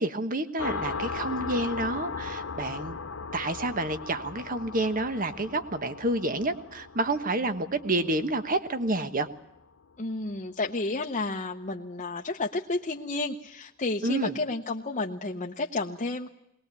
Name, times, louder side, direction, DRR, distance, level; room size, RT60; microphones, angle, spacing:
voice 1, 0.0-3.0 3.3-9.3 14.0-14.4, right 2 dB, 45° right, 10 dB, 1.3 m, -29 dB
sound 1, 0.6-9.8, left 4 dB, 90° left, 0.8 m, -38 dB
voice 2, 10.0-16.3, left 3 dB, 35° left, 0 dB, 0.9 m, -31 dB
21.0 x 19.5 x 8.3 m, 0.82 s
head